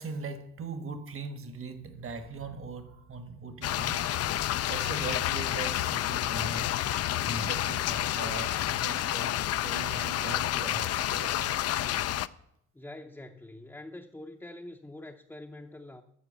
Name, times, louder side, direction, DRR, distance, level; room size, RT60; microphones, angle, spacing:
voice 1, 0.0-6.7 7.2-11.5, right 4 dB, 45° right, 1.3 m, -40 dB
sound 1, 3.6-12.3, left 13 dB, 55° left, 0.4 m, -29 dB
voice 2, 12.7-16.0, left 1 dB, 5° left, 0.6 m, -45 dB
13.0 x 4.8 x 7.0 m
cardioid pair, 90°, 30 cm